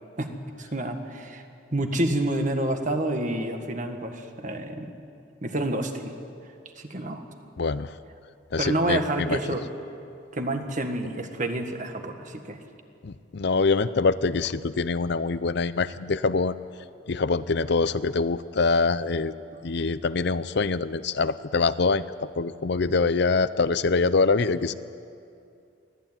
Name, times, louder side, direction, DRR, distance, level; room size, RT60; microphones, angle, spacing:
voice 1, 0.6-1.4 1.7-4.9 5.4-6.1 6.8-7.2 8.6-9.7 10.3-12.6, right 1 dB, 40° right, 5 dB, 1.7 m, -28 dB
voice 2, 7.6-7.9 8.5-9.4 13.0-16.6 17.1-19.3 19.6-22.0 22.4-24.7, left 4 dB, 55° left, 14 dB, 0.6 m, -24 dB
23.5 x 15.5 x 9.1 m, 2.5 s
head